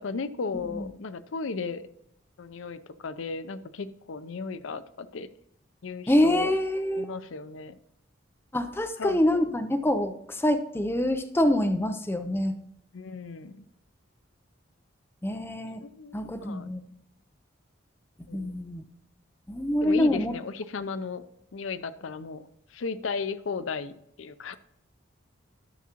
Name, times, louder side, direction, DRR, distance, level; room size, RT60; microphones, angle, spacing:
voice 1, 0.0-1.8 2.4-5.3 5.8-6.5 7.0-7.8 9.0-9.4 12.9-13.6 15.8-16.7 18.3-18.6 19.8-21.2 21.5-23.9 24.2-24.5, left 4 dB, 75° left, 13 dB, 0.5 m, -35 dB
voice 2, 6.1-7.0 8.5-12.6 15.2-15.8 16.1-16.8 18.3-18.8 19.5-20.3, left 1 dB, 10° left, 5 dB, 0.5 m, -25 dB
13.0 x 6.1 x 2.9 m, 0.80 s
head